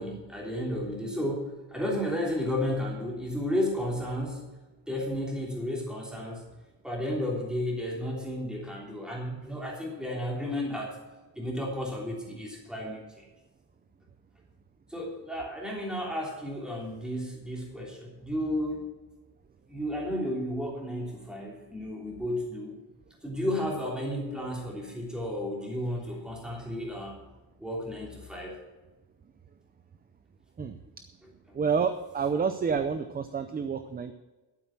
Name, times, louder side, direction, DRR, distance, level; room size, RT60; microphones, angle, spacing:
voice 1, 0.0-4.4 4.9-6.4 6.8-11.0 11.3-13.3 14.9-18.8 19.7-22.7 23.2-27.2 27.6-28.6, left 1 dB, ahead, -2 dB, 3.3 m, -33 dB
voice 2, 31.5-34.1, right 6 dB, 25° right, 9 dB, 0.5 m, -28 dB
12.5 x 8.5 x 5.9 m, 1.2 s
cardioid pair, 175°, 40 cm